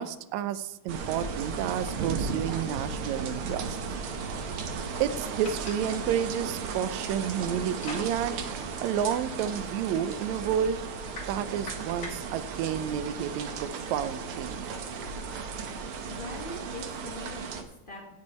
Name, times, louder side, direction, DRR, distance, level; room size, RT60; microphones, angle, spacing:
voice 1, 0.0-3.8 5.0-8.4 8.8-10.8 11.3-14.8, right 9 dB, 80° right, 13 dB, 1.9 m, -30 dB
sound 1, 0.9-17.6, right 5 dB, 60° right, 1.5 m, -35 dB
sound 2, 1.8-13.6, left 3 dB, 35° left, 2.0 m, -49 dB
voice 2, 16.1-18.1, left 1 dB, 75° left, 0 dB, 0.4 m, -42 dB
17.0 x 6.3 x 4.3 m, 0.89 s
omnidirectional pair, 3.3 m